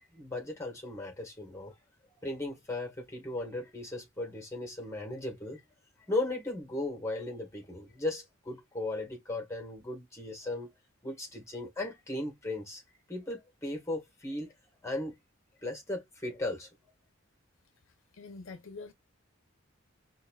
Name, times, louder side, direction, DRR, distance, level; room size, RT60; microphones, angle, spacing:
voice 1, 0.1-1.7 2.2-5.6 6.1-10.7 11.0-12.8 13.1-14.5 14.8-15.2 15.6-16.7, left 2 dB, 15° left, 1.6 m, -36 dB
voice 2, 18.1-18.9, left 3 dB, 75° left, 0.7 m, -45 dB
5.5 x 2.7 x 2.3 m
head